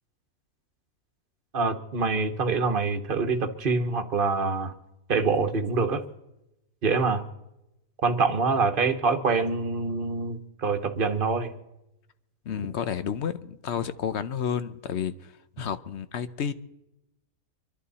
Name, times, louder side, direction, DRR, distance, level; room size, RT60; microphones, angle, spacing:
voice 1, 1.5-4.7 5.1-6.0 6.8-7.2 8.0-11.5, right 4 dB, 40° right, 1.3 m, -25 dB
voice 2, 12.5-16.5, left 8 dB, 55° left, 0.9 m, -31 dB
26.0 x 11.5 x 4.2 m
omnidirectional pair, 1.5 m